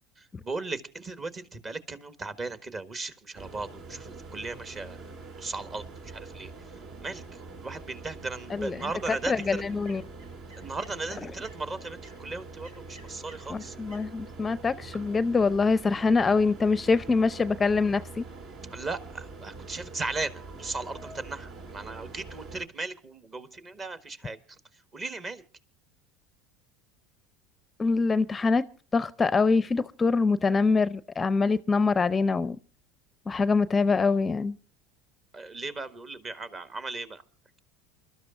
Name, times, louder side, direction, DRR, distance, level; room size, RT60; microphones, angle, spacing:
voice 1, 0.2-5.0 5.4-6.5 7.0-9.6 10.6-13.7 18.7-25.4 35.3-37.2, right 3 dB, 30° right, 1.5 m, -37 dB
sound 1, 3.3-22.7, right 3 dB, 60° right, 2.5 m, -44 dB
sound 2, 8.6-14.0, right 2 dB, 90° right, 7.6 m, -56 dB
voice 2, 9.3-10.0 13.5-18.2 27.8-28.7 28.9-32.6 33.3-34.6, left 4 dB, 20° left, 0.6 m, -24 dB
28.0 x 12.5 x 2.5 m
hypercardioid pair, 85°, 0 cm